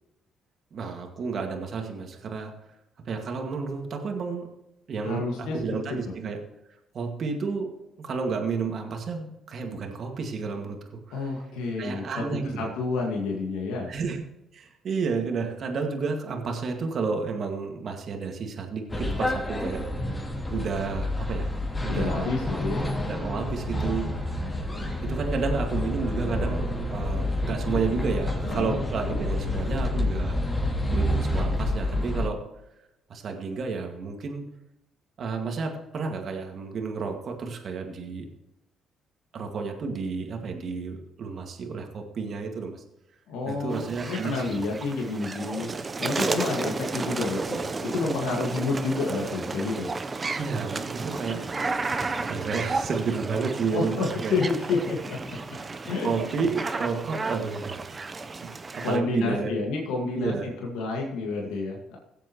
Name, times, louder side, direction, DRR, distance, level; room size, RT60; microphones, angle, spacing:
voice 1, 0.7-2.5 3.1-4.5 4.9-6.4 6.9-11.3 11.8-12.7 13.9-14.2 14.5-19.9 20.5-21.5 21.8-22.3 23.1-24.6 25.0-30.4 30.9-32.4 33.1-34.5 35.2-38.3 39.3-42.8 43.4-44.6 50.3-51.7 52.3-54.4 55.5-57.9 58.4-59.6 60.2-60.5, right 5 dB, 60° right, 3 dB, 2.1 m, -31 dB
voice 2, 5.0-6.0 11.1-12.0 12.6-13.9 21.9-22.8 28.5-28.8 43.3-45.7 46.0-49.9 53.7-55.4 55.9-56.2 58.8-60.3 60.6-62.0, left 3 dB, 80° left, -1 dB, 1.9 m, -29 dB
sound 1, 18.9-32.3, left 1 dB, 25° left, 2.9 m, -28 dB
animals cormorants nest take off mono, 43.7-59.0, right 3 dB, 35° right, 0.8 m, -32 dB
17.5 x 7.5 x 3.1 m, 0.90 s
supercardioid pair, 60°, 0 cm